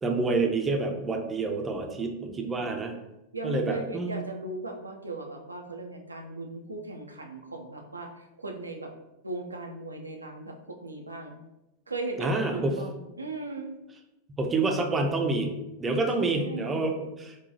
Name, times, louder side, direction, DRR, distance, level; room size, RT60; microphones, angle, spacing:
voice 1, 0.0-3.0 3.4-4.2 12.2-12.8 14.4-15.5 15.8-17.4, right 3 dB, 15° right, 3 dB, 0.5 m, -28 dB
voice 2, 2.0-2.5 3.3-8.9 9.2-11.4 11.9-13.7 16.2-16.9, right 2 dB, 80° right, 2 dB, 0.4 m, -38 dB
4.7 x 2.2 x 2.7 m, 0.94 s
figure-of-eight pair, 90°, 0 cm